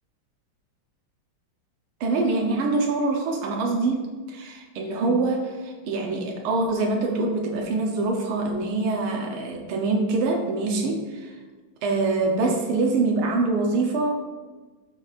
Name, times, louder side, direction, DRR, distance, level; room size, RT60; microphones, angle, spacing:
voice 1, 2.0-11.3 11.8-14.1, right 3 dB, 90° right, 1 dB, 1.7 m, -24 dB
11.5 x 6.1 x 2.4 m, 1.3 s
omnidirectional pair, 2.3 m